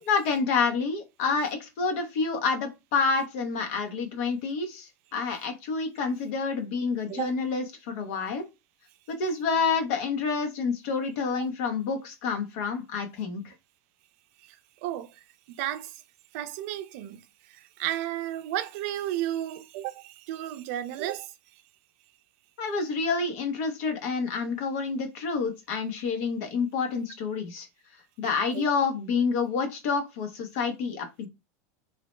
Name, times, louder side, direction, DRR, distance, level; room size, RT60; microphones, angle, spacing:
voice 1, 0.0-8.5 9.1-13.5 22.6-27.7 28.2-31.3, left 5 dB, 65° left, 0.7 m, -28 dB
voice 2, 14.8-15.2 15.5-16.0 16.3-17.2 17.5-21.3 28.5-28.6, right 13 dB, 65° right, 0.4 m, -33 dB
2.6 x 2.0 x 3.1 m
supercardioid pair, 135°, 9 cm